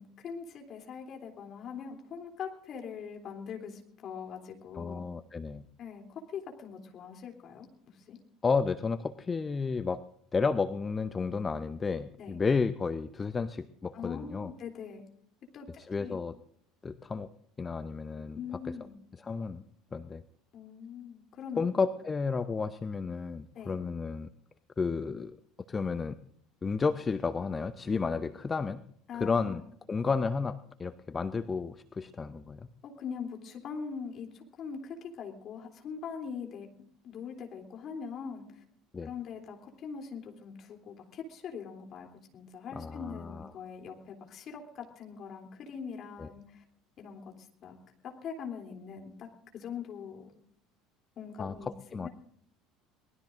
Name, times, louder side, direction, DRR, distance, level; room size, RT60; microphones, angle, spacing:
voice 1, 0.0-5.0 5.8-8.2 12.2-12.4 13.9-15.0 15.5-15.7 16.0-16.2 18.3-18.9 20.5-21.6 23.5-23.8 29.1-29.7 32.8-36.7 37.0-38.6 39.0-46.6 47.0-47.8 48.0-49.3 49.5-50.4 51.2-52.1, left 6 dB, 45° left, 2 dB, 3.1 m, -42 dB
voice 2, 4.8-5.7 8.4-10.0 10.3-14.5 15.8-16.4 16.8-17.3 17.6-18.4 19.2-19.6 19.9-20.2 21.6-24.3 24.8-25.4 25.7-26.2 26.6-28.8 29.2-29.6 29.9-32.7 38.9-39.1 42.8-43.5 46.2-46.3 51.4-51.5 51.9-52.1, left 4 dB, 25° left, 12 dB, 0.7 m, -32 dB
23.5 x 19.0 x 2.6 m, 0.67 s
figure-of-eight pair, 65°, 0 cm